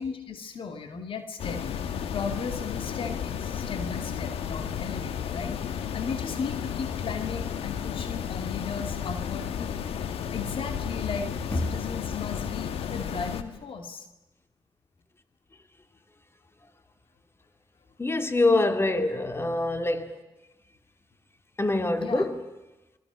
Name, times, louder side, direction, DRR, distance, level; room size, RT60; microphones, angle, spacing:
voice 1, 0.0-1.8 2.1-9.8 10.3-14.1 18.9-19.1 22.0-22.2, left 5 dB, 65° left, 2.4 m, -36 dB
sound 1, 1.4-13.4, left 8 dB, 85° left, 1.4 m, -33 dB
voice 2, 18.0-20.1 21.6-22.4, left 2 dB, 25° left, 2.5 m, -25 dB
29.0 x 23.0 x 6.3 m
supercardioid pair, 50°, 10 cm